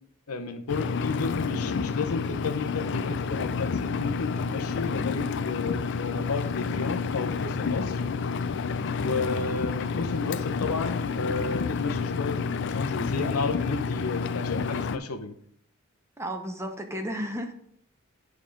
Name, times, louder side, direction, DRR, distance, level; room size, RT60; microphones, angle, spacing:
voice 1, 0.3-8.0 9.0-15.4, left 4 dB, 85° left, 6 dB, 0.8 m, -32 dB
Engine, 0.7-15.0, left 5 dB, 55° left, 0.4 m, -29 dB
voice 2, 16.2-17.5, equal, 10° right, 5 dB, 0.8 m, -33 dB
10.0 x 3.6 x 4.9 m, 0.68 s
head